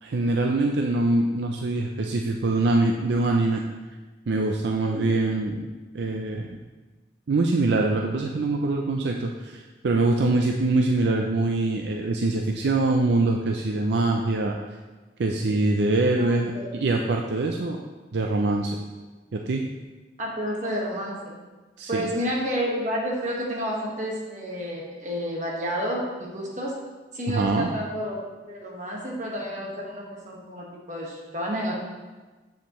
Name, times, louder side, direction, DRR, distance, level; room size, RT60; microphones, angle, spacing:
voice 1, 0.0-3.6 4.3-5.7 5.9-6.6 7.3-14.6 15.2-17.8 18.1-18.8 19.3-19.6 21.8-22.1 27.3-27.7, right 2 dB, 70° right, 2 dB, 0.4 m, -24 dB
voice 2, 16.2-16.7 20.2-21.4 21.9-26.8 27.1-28.2 28.4-31.7, equal, 40° right, -3 dB, 1.5 m, -30 dB
7.4 x 6.9 x 3.1 m, 1.3 s
head